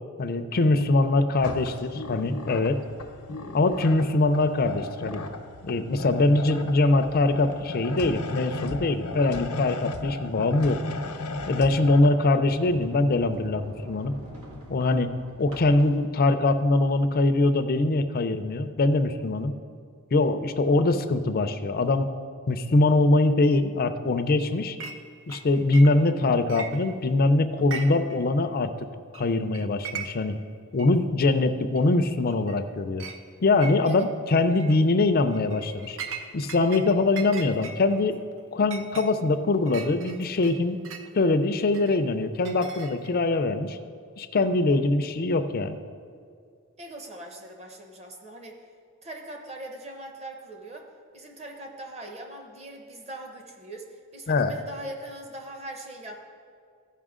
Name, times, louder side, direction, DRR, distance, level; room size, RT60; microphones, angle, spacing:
voice 1, 0.2-2.8 3.5-5.2 5.6-10.8 11.5-14.2 14.7-19.5 20.1-22.1 22.5-24.8 25.3-28.7 29.1-30.4 30.7-33.0 33.4-36.0 36.3-38.2 38.5-40.8 41.1-43.8 44.2-45.8 54.3-54.5, left 2 dB, 45° left, 9 dB, 0.5 m, -23 dB
sound 1, 1.4-12.1, left 2 dB, 85° left, 0.8 m, -36 dB
Sliding door, 12.4-17.2, equal, 80° right, 1.5 m, -45 dB
Chink clink, 24.8-25.0 25.3-26.2 26.5-27.2 27.6-28.2 28.4-28.5 29.1-29.3 29.5-30.4 30.8-30.9 31.8-31.9 32.3-32.6 33.0-33.2 33.6-34.1 34.5-34.8 35.3-36.9 37.2-41.1 41.7-43.2, right 6 dB, 60° right, 0.7 m, -39 dB
voice 2, 46.8-48.6 49.0-50.9 51.1-56.2, right 1 dB, 30° right, 2 dB, 1.1 m, -41 dB
15.0 x 5.6 x 3.7 m, 2.2 s
head